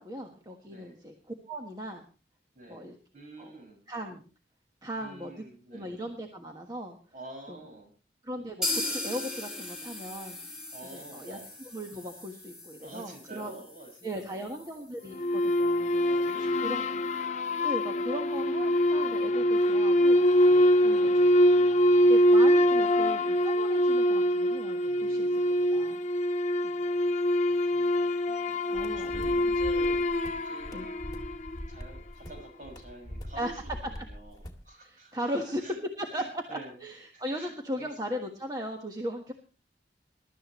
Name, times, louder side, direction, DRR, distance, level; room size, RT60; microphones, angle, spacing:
voice 1, 0.0-2.0 2.7-3.0 3.4-3.6 3.9-4.2 4.8-5.4 5.7-7.0 7.5-7.6 8.2-10.4 10.8-11.4 11.7-13.6 14.0-16.1 16.6-16.8 17.6-20.5 20.8-21.2 22.1-25.4 25.7-26.0 26.6-26.7 28.7-29.5 30.7-30.9 33.4-33.5 34.8-35.6 36.0-39.3, equal, 20° right, 2 dB, 1.4 m, -38 dB
voice 2, 0.7-1.0 2.5-2.9 3.1-3.8 5.0-5.9 7.1-7.9 10.7-11.5 12.8-14.6 15.9-17.1 20.4-22.0 24.9-25.9 26.8-28.6 28.9-30.1 30.4-30.9 31.7-34.4 34.6-35.8 36.1-36.8 37.1-38.3, right 2 dB, 45° right, 2 dB, 6.0 m, -48 dB
sound 1, 8.6-16.3 16.6-16.7 17.1-17.2 17.6-17.7, left 2 dB, 5° right, 3.1 m, -39 dB
sound 2, 15.1-31.7, equal, 40° left, 0.8 m, -24 dB
sound 3, 28.7-34.7, equal, 20° left, 2.0 m, -43 dB
22.0 x 12.5 x 3.1 m, 0.34 s
head